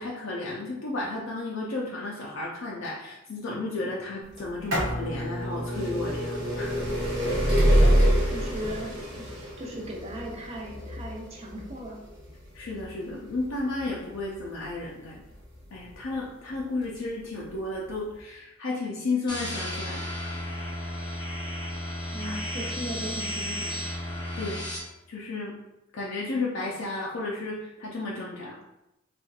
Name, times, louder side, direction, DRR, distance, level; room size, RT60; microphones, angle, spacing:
voice 1, 0.0-6.8 7.2-7.5 12.5-15.2 15.7-20.1 24.4-24.6 25.1-25.5 25.9-28.6, left 2 dB, 70° left, -4 dB, 0.5 m, -33 dB
sound 1, 4.4-16.0 16.8-16.9 17.9-18.0 18.2-18.3, equal, 65° right, 1.0 m, -26 dB
sound 2, 5.7-9.7, right 1 dB, 85° right, 0.8 m, -48 dB
voice 2, 8.3-9.2 9.6-12.0 22.1-23.8, equal, 30° right, -1 dB, 0.6 m, -37 dB
sound 3, 19.3-24.8, left 1 dB, 20° left, 0.6 m, -33 dB
4.2 x 2.4 x 2.3 m, 0.92 s
head